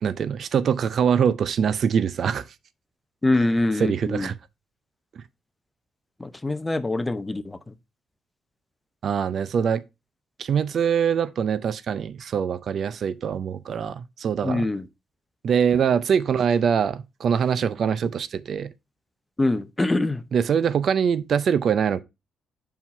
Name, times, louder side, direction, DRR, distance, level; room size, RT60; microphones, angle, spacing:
voice 1, 0.0-2.4 3.8-4.3 5.2-5.3 9.0-9.8 10.4-14.7 15.4-18.7 20.3-22.0, right 7 dB, 55° right, 0.5 m, -23 dB
voice 2, 3.2-4.3 6.2-7.7 14.4-14.9 19.4-20.2, left 2 dB, 15° left, 0.6 m, -24 dB
5.6 x 4.6 x 4.2 m
cardioid pair, 90°, 0 cm